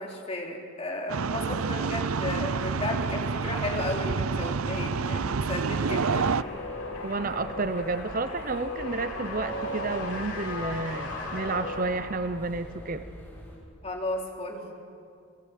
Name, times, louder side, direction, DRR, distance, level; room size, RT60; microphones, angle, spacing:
voice 1, 0.0-6.3 13.8-14.7, left 1 dB, 30° left, 0 dB, 3.8 m, -34 dB
sound 1, 1.1-6.4, right 5 dB, 75° right, 0.6 m, -28 dB
sound 2, 1.9-13.6, equal, 10° left, 7.5 m, -46 dB
sound 3, 5.8-12.5, left 2 dB, 85° left, 6.4 m, -36 dB
voice 2, 7.0-13.0, right 3 dB, 40° right, 10 dB, 0.8 m, -31 dB
30.0 x 20.0 x 9.4 m, 2.4 s
head